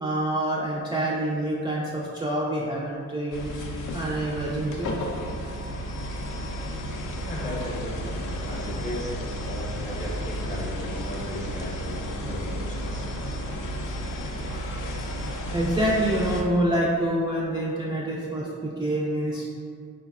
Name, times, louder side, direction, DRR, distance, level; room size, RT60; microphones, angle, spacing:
voice 1, 0.0-3.6 3.9-5.3 7.3-7.7 14.5-19.5, right 1 dB, 15° right, -6 dB, 0.3 m, -27 dB
sound 1, 3.3-16.4, equal, 60° left, 0.5 m, -32 dB
voice 2, 7.3-13.0, left 1 dB, 20° left, -3 dB, 0.7 m, -36 dB
3.8 x 2.1 x 2.3 m, 2.2 s
supercardioid pair, 60°, 35 cm